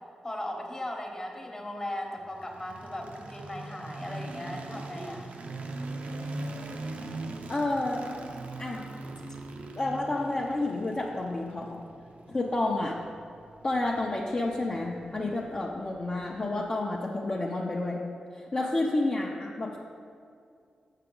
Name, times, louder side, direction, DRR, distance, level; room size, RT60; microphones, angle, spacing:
voice 1, 0.2-5.4 15.2-15.3 18.6-18.7, left 1 dB, 25° left, 1 dB, 1.1 m, -38 dB
sound 1, 2.3-16.4, right 2 dB, 70° right, 0.6 m, -41 dB
voice 2, 7.5-8.0 8.6-8.8 9.8-11.8 12.3-13.0 13.6-18.0 18.5-19.8, left 2 dB, 40° left, -3 dB, 0.6 m, -30 dB
6.6 x 5.9 x 3.8 m, 2.3 s
cardioid pair, 70°, 2 cm